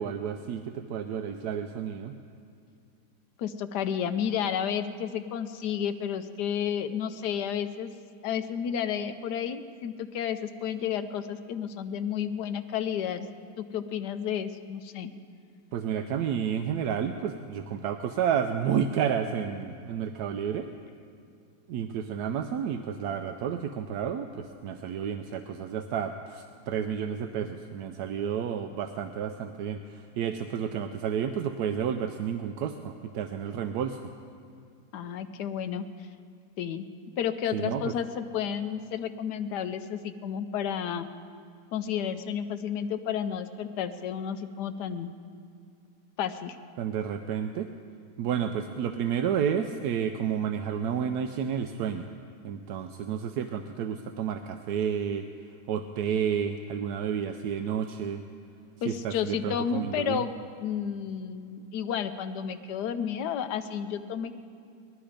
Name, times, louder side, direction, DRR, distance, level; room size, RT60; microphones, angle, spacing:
voice 1, 0.0-2.1 15.7-20.7 21.7-34.1 37.5-37.9 46.8-47.7 48.2-52.1 52.4-55.3 55.7-58.2 58.9-60.2, right 8 dB, 80° right, 7 dB, 1.1 m, -31 dB
voice 2, 3.4-7.9 8.2-13.3 13.6-15.1 34.9-35.8 36.6-36.9 37.2-41.1 41.7-45.1 46.2-46.6 58.8-60.3 60.6-64.3, left 8 dB, 85° left, 10 dB, 1.3 m, -31 dB
19.5 x 12.5 x 5.1 m, 2.3 s
omnidirectional pair, 1.7 m